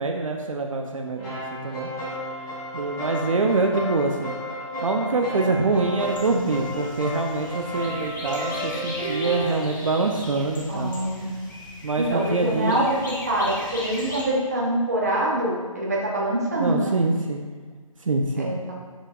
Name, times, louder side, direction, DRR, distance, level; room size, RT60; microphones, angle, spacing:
voice 1, 0.0-1.9 2.7-4.3 4.8-10.9 11.8-12.8 16.6-17.4 18.0-18.5, right 3 dB, 65° right, 3 dB, 0.7 m, -25 dB
sound 1, 1.1-9.5, equal, 5° left, 1.2 m, -32 dB
sound 2, 6.0-14.2, left 1 dB, 35° left, 1.2 m, -38 dB
voice 2, 10.7-11.5 11.9-17.0 18.3-18.7, right 1 dB, 30° right, -4 dB, 1.0 m, -25 dB
7.2 x 7.1 x 2.5 m, 1.5 s
hypercardioid pair, 180°, 18 cm